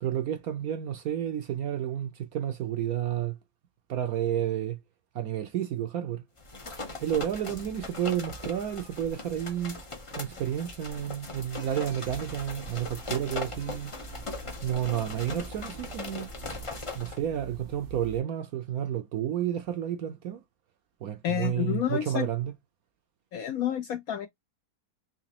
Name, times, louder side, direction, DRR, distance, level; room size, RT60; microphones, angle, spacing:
voice 1, 0.0-3.4 3.9-4.8 5.1-6.2 7.0-9.8 10.2-13.9 14.6-16.3 16.9-20.4 21.0-22.5, right 10 dB, 70° right, 0.9 m, -31 dB
sound 1, 6.4-17.2, left 3 dB, 50° left, 0.3 m, -40 dB
sound 2, 12.1-18.2, right 2 dB, 85° right, 1.5 m, -46 dB
voice 2, 21.2-22.3 23.3-24.3, left 11 dB, 70° left, 0.8 m, -29 dB
4.0 x 2.9 x 2.8 m
omnidirectional pair, 1.9 m